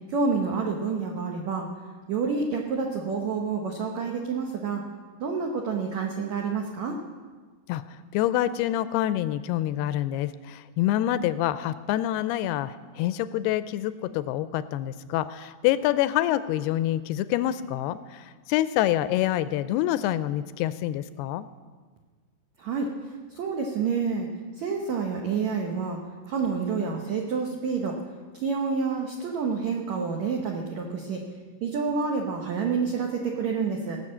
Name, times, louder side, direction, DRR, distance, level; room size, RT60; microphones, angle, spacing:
voice 1, 0.1-1.7 2.1-4.8 5.2-7.0 22.6-22.9 23.3-24.3 24.6-26.0 26.3-28.0 28.3-31.2 31.6-34.0, right 5 dB, 85° right, 1 dB, 1.6 m, -28 dB
voice 2, 7.7-21.5, left 13 dB, 85° left, 14 dB, 2.3 m, -26 dB
18.0 x 6.7 x 8.5 m, 1.5 s
omnidirectional pair, 4.9 m